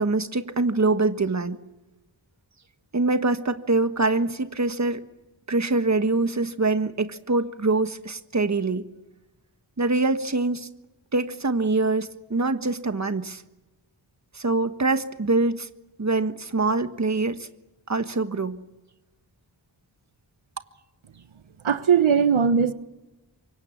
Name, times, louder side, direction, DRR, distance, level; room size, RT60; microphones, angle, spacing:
voice 1, 0.0-1.6 2.9-5.0 5.5-8.8 9.8-10.7 11.1-13.4 14.3-15.7 16.0-17.5 17.9-18.6, right 3 dB, 35° right, 10 dB, 1.4 m, -24 dB
voice 2, 21.6-22.7, right 7 dB, 85° right, 11 dB, 1.3 m, -19 dB
28.5 x 24.0 x 7.3 m, 1.1 s
wide cardioid pair, 65°, 47 cm